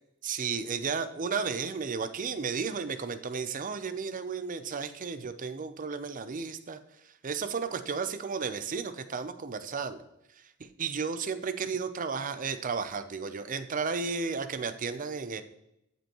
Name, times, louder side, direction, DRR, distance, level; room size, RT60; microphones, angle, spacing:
voice 1, 0.2-6.8 7.2-10.0 10.6-15.4, right 5 dB, 40° right, 11 dB, 0.5 m, -33 dB
12.5 x 5.4 x 3.0 m, 0.82 s
head